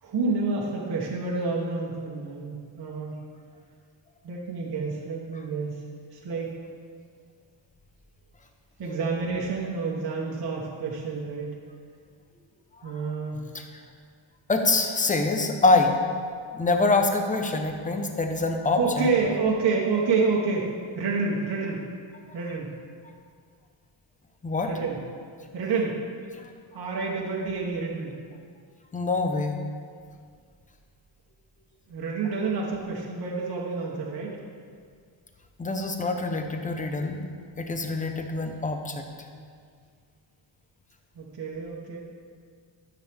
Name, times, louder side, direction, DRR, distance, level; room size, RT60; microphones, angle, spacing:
voice 1, 0.0-3.2 4.2-6.6 8.8-11.5 12.8-13.5 18.8-21.8 22.3-22.7 24.6-25.0 25.5-26.0 26.7-28.2 31.9-34.4 41.2-42.0, right 4 dB, 50° right, -3 dB, 1.2 m, -28 dB
voice 2, 14.5-15.9 16.5-19.1 24.4-24.7 26.4-26.5 28.9-29.6 35.6-37.2 37.6-39.0, left 3 dB, 15° left, 4 dB, 0.7 m, -25 dB
12.5 x 7.3 x 3.5 m, 2.1 s
wide cardioid pair, 160°, 48 cm